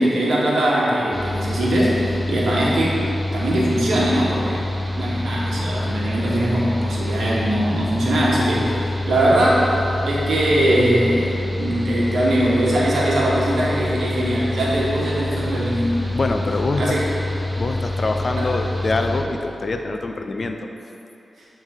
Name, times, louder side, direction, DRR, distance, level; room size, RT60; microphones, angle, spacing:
voice 1, 0.0-3.1 3.3-4.7 4.9-9.7 10.1-16.0 16.8-17.0 18.4-18.5, right 1 dB, 80° right, -5 dB, 1.2 m, -21 dB
Mechanical fan, 1.1-19.2, left 1 dB, ahead, 0.8 m, -26 dB
voice 2, 16.1-16.8 17.6-20.6, left 3 dB, 55° left, 5 dB, 0.4 m, -24 dB
8.5 x 3.3 x 3.5 m, 2.8 s
cardioid pair, 45°, 0 cm